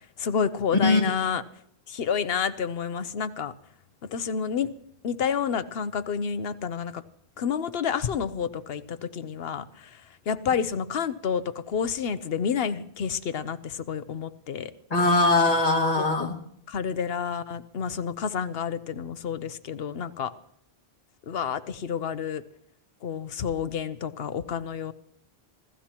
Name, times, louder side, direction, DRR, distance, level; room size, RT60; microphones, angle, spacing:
voice 1, 0.2-1.4 1.9-3.5 4.1-4.7 5.0-7.0 7.4-10.0 10.3-14.7 16.0-16.3 16.7-20.3 21.3-22.4 23.0-24.9, left 7 dB, 70° left, 13 dB, 1.0 m, -29 dB
voice 2, 0.8-1.2 14.9-16.3, left 2 dB, 35° left, -1 dB, 2.3 m, -21 dB
27.0 x 14.5 x 3.0 m, 0.71 s
omnidirectional pair, 1.1 m